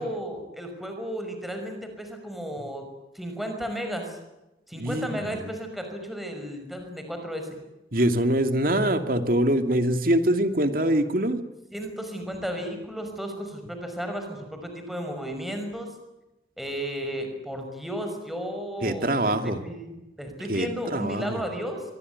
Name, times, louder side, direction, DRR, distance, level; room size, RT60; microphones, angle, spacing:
voice 1, 0.0-2.9 3.1-4.2 4.7-7.5 10.8-11.0 11.7-15.9 16.6-21.8, equal, ahead, 5 dB, 5.7 m, -34 dB
voice 2, 4.7-5.5 7.9-11.4 18.8-19.6 20.5-21.4, right 1 dB, 50° right, 8 dB, 2.5 m, -24 dB
25.0 x 23.0 x 9.6 m, 0.95 s
head